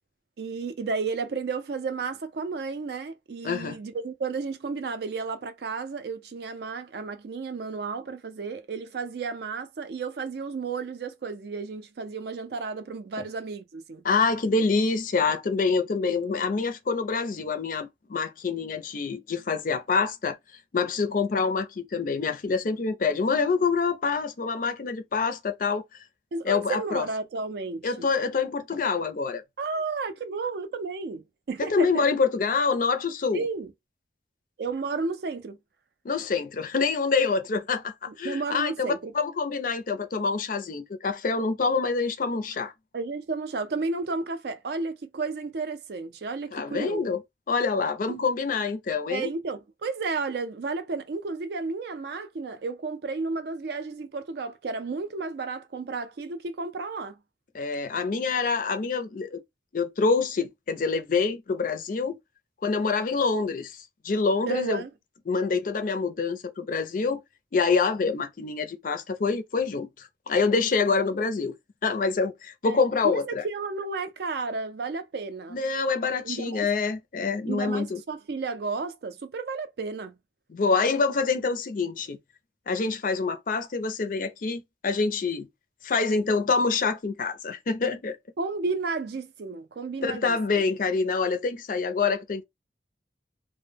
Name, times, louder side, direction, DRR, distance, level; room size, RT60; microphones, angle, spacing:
voice 1, 0.4-14.0 26.3-28.1 29.6-32.1 33.3-33.7 34.6-35.6 38.1-39.1 42.9-47.0 49.1-57.2 64.5-64.9 72.6-75.6 76.2-76.7 77.5-80.2 88.4-90.4, right 4 dB, 55° right, 0.4 m, -32 dB
voice 2, 3.4-3.8 13.2-13.3 14.0-20.4 20.7-25.8 26.4-27.0 27.8-29.4 31.6-33.4 36.0-42.7 46.5-47.2 47.5-49.3 57.5-59.4 59.7-62.2 62.6-64.8 65.3-67.2 67.5-71.5 71.8-73.4 75.5-78.0 80.5-82.2 82.7-85.5 85.8-88.2 90.0-92.4, left 4 dB, 45° left, 0.4 m, -26 dB
2.1 x 2.1 x 3.3 m
head